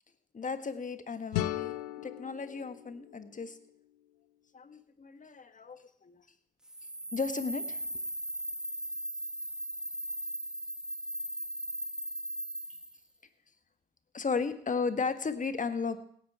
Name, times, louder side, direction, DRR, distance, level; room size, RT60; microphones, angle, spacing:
voice 1, 0.3-1.7 2.0-3.6 4.5-6.2 7.1-7.9 14.1-16.0, left 5 dB, 40° left, 10 dB, 1.5 m, -35 dB
sound 1, 1.3-4.2, left 15 dB, 90° left, 0.5 m, -38 dB
sound 2, 6.7-13.0, right 1 dB, 5° right, 1.4 m, -38 dB
17.0 x 10.0 x 4.9 m, 0.63 s
hypercardioid pair, 40°, 20 cm